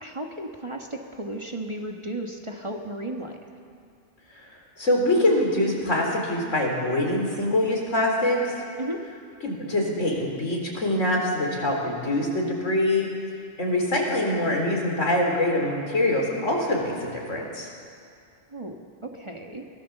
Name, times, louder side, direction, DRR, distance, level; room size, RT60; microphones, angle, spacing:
voice 1, 0.0-3.4 8.8-9.0 18.5-19.6, right 1 dB, 25° right, 2 dB, 1.5 m, -34 dB
voice 2, 4.8-8.6 9.4-13.1 13.6-17.7, left 1 dB, 80° left, -1 dB, 4.4 m, -24 dB
23.5 x 18.0 x 7.2 m, 2.3 s
omnidirectional pair, 1.3 m